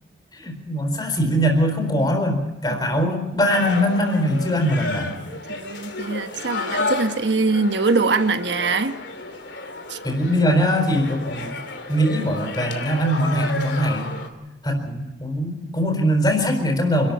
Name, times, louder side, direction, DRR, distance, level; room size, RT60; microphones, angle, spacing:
voice 1, 0.3-5.2 10.0-11.6 11.9-14.1 14.6-17.1, equal, 25° left, 4.4 m, -22 dB
voice 2, 2.7-3.0 5.5-9.0 9.9-10.0, right 3 dB, 85° right, 1.2 m, -23 dB
sound 1, 3.5-14.3, left 2 dB, 80° left, 2.8 m, -31 dB
26.5 x 13.0 x 8.6 m
head